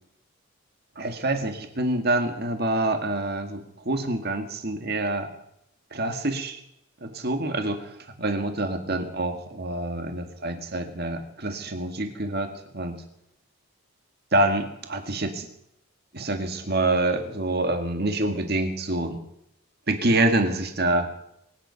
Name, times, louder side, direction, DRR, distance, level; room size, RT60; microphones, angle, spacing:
voice 1, 1.0-5.3 5.9-6.6 7.0-13.1 14.3-15.5 16.1-19.3 19.9-21.2, right 2 dB, 50° right, 6 dB, 2.0 m, -26 dB
23.5 x 9.8 x 5.8 m, 0.78 s
head